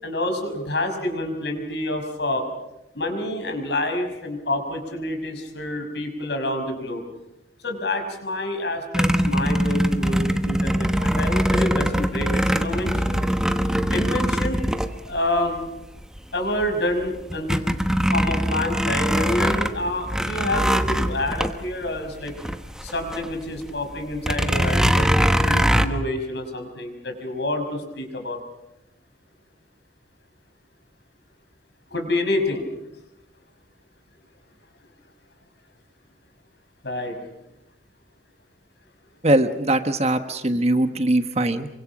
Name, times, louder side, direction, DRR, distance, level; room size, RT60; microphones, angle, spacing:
voice 1, 0.0-2.4 2.9-7.0 7.6-13.2 13.9-14.7 15.1-15.7 16.3-17.7 18.1-22.3 22.8-28.4 31.9-32.7 36.8-37.2, left 1 dB, 65° left, 5 dB, 5.7 m, -28 dB
sound 1, 8.9-15.6 16.2-16.3 16.6-23.3 23.6-23.7 24.2-25.9, equal, 5° right, 1.1 m, -22 dB
voice 2, 39.2-41.7, right 1 dB, 35° right, 9 dB, 1.3 m, -21 dB
27.5 x 24.5 x 6.2 m, 0.92 s
head